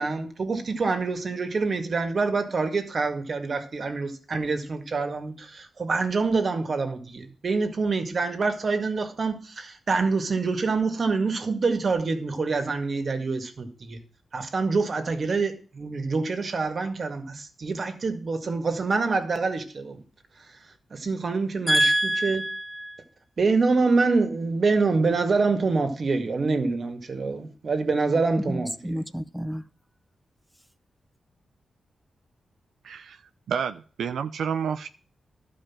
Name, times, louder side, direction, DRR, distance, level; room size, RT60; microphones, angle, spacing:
voice 1, 0.0-14.0 14.3-20.0 20.9-21.9 22.2-22.4 23.4-28.9, right 4 dB, 50° right, 2.0 m, -26 dB
voice 2, 21.7-23.0 28.5-29.6, right 1 dB, ahead, 0.6 m, -26 dB
voice 3, 32.8-33.2 33.5-34.9, right 7 dB, 85° right, 0.5 m, -29 dB
12.0 x 5.1 x 7.3 m
cardioid pair, 75°, 0 cm